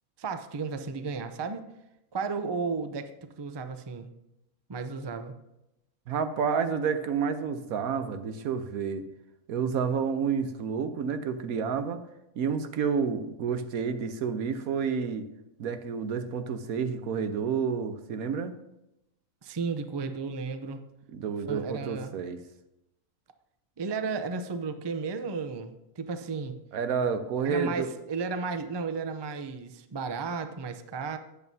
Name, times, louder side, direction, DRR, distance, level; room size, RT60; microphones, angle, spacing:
voice 1, 0.2-1.6 2.1-4.1 4.7-5.3 19.4-20.8 21.4-22.1 23.8-26.6 27.4-31.2, right 4 dB, 40° right, 8 dB, 0.4 m, -34 dB
voice 2, 6.1-9.0 9.5-12.0 12.4-15.3 15.6-18.5 21.1-22.4 26.7-27.9, right 6 dB, 85° right, 9 dB, 1.2 m, -29 dB
13.0 x 9.2 x 2.7 m, 0.87 s
omnidirectional pair, 1.5 m